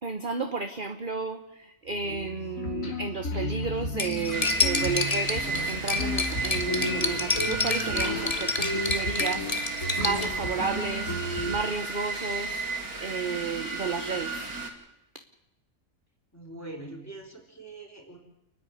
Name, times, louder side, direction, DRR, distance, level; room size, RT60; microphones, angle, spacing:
voice 1, 0.0-11.1 11.5-12.7 13.0-14.5, right 4 dB, 40° right, 8 dB, 1.2 m, -32 dB
sound 1, 1.9-11.6, left 1 dB, 65° left, 3.0 m, -33 dB
Cutlery silverware, 4.0-10.3, left 3 dB, 25° left, 1.5 m, -29 dB
sound 2, 4.3-14.7, right 3 dB, 80° right, 3.3 m, -34 dB
voice 2, 16.3-18.2, right 2 dB, 10° left, 1 dB, 4.6 m, -43 dB
29.5 x 10.0 x 9.4 m, 0.91 s
omnidirectional pair, 1.5 m